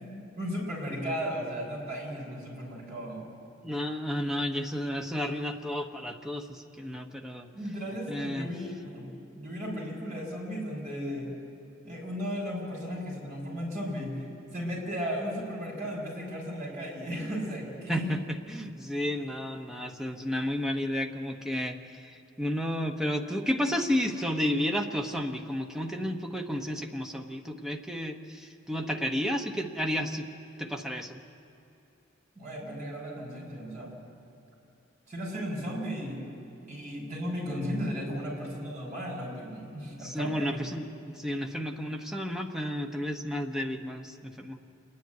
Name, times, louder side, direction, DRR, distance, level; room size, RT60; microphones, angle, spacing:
voice 1, 0.0-3.2 7.5-9.1 9.4-11.3 11.8-14.2 14.5-18.1 32.3-33.9 35.1-36.2 36.6-40.6, equal, 40° right, -2 dB, 6.3 m, -35 dB
voice 2, 3.6-7.5 8.1-8.5 17.9-30.3 30.6-31.2 40.0-44.6, equal, 5° right, 3 dB, 1.0 m, -32 dB
27.5 x 10.5 x 9.5 m, 2.8 s
head